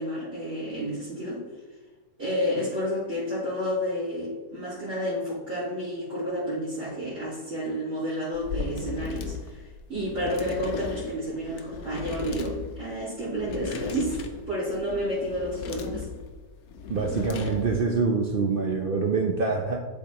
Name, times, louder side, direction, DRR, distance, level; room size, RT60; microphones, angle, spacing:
voice 1, 0.0-1.5 2.2-9.6 9.9-14.2 14.5-16.1, equal, 40° right, -12 dB, 2.4 m, -30 dB
sound 1, 8.3-17.9, left 6 dB, 70° left, 1.1 m, -37 dB
voice 2, 16.9-19.8, right 4 dB, 60° right, 2 dB, 0.5 m, -25 dB
11.0 x 4.2 x 3.0 m, 1.3 s
omnidirectional pair, 1.7 m